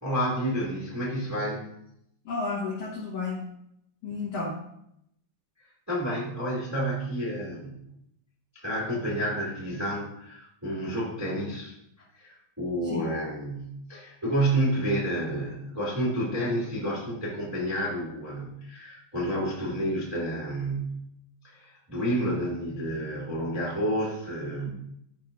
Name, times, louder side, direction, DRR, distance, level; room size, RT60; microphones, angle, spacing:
voice 1, 0.0-1.7 5.9-7.8 8.5-11.7 12.1-21.0 21.4-24.7, right 1 dB, 5° right, -7 dB, 1.5 m, -30 dB
voice 2, 2.3-3.4 4.0-4.6 12.8-13.0, left 3 dB, 65° left, -6 dB, 2.0 m, -32 dB
13.0 x 5.6 x 2.6 m, 0.76 s
omnidirectional pair, 5.4 m